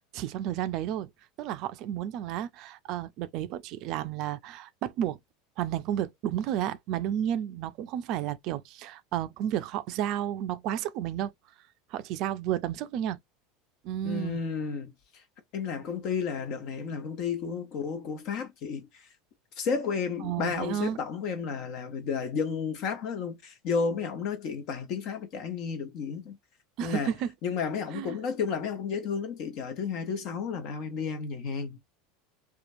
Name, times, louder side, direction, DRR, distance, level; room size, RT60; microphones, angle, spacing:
voice 1, 0.1-1.1 1.4-5.2 5.6-11.3 11.9-13.2 13.8-14.4 20.2-21.0 26.8-27.3 27.9-28.2, right 11 dB, 55° right, 0.4 m, -32 dB
voice 2, 14.0-14.9 15.5-19.1 19.6-26.4 26.8-27.1 27.4-31.8, left 6 dB, 55° left, 1.0 m, -32 dB
2.8 x 2.3 x 2.6 m
hypercardioid pair, 85°, 0 cm